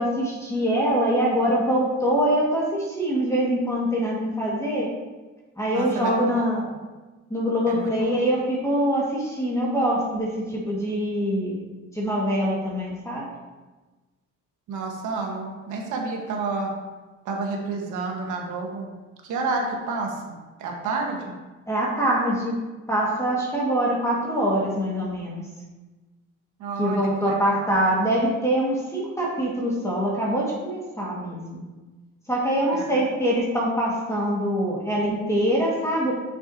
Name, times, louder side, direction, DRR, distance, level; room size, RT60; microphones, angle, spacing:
voice 1, 0.0-4.9 5.6-6.6 7.3-11.6 11.9-13.3 21.7-22.6 22.9-25.4 26.8-31.6 32.3-36.2, equal, 10° left, -5 dB, 1.8 m, -24 dB
voice 2, 5.7-6.2 6.5-6.7 7.7-7.9 14.7-16.7 17.2-18.9 19.2-21.3 26.6-27.7 32.7-33.0, right 3 dB, 85° right, 0 dB, 1.4 m, -30 dB
7.1 x 6.4 x 2.8 m, 1.2 s
cardioid pair, 90°, 30 cm